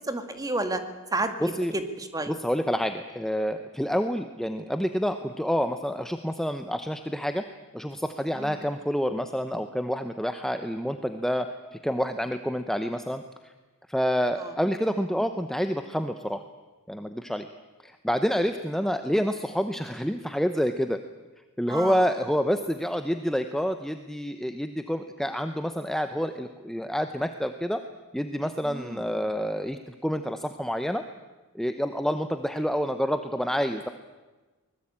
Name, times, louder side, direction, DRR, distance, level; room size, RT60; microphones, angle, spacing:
voice 1, 0.1-0.8 1.1-2.3 8.4-8.6 14.4-14.5 21.7-22.0 28.6-29.0, right 2 dB, 15° right, 8 dB, 2.1 m, -31 dB
voice 2, 1.4-1.7 2.3-7.4 7.7-13.5 13.9-16.4 16.9-17.5 17.8-21.0 21.6-27.8 28.1-31.0 31.5-33.9, equal, ahead, 8 dB, 0.8 m, -28 dB
24.0 x 20.5 x 8.8 m, 1.2 s
head